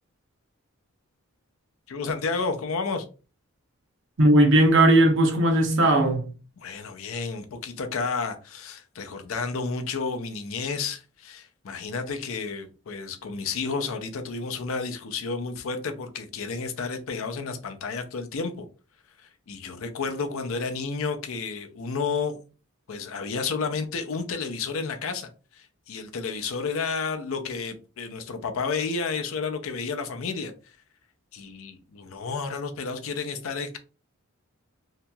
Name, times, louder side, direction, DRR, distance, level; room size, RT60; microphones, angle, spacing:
voice 1, 1.9-3.1 6.6-18.7 19.2-22.4 22.9-30.8 31.3-33.8, left 4 dB, 65° left, 0.5 m, -31 dB
voice 2, 4.2-6.2, right 1 dB, 55° right, 0.7 m, -18 dB
2.8 x 2.7 x 2.2 m
head